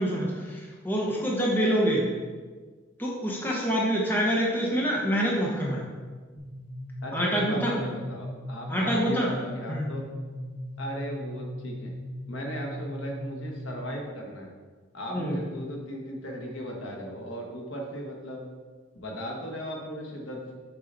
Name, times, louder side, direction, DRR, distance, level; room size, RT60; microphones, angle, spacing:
voice 1, 0.0-2.0 3.0-5.9 7.1-7.8 8.7-9.3 9.7-9.9 15.1-15.4, equal, 10° left, -3 dB, 0.9 m, -26 dB
sound 1, 6.4-13.9, equal, 45° left, 1.7 m, -38 dB
voice 2, 7.0-10.0 10.8-11.9 12.3-14.5 14.9-18.4 18.9-20.5, equal, 80° left, 1 dB, 1.3 m, -37 dB
6.8 x 4.8 x 4.0 m, 1.4 s
head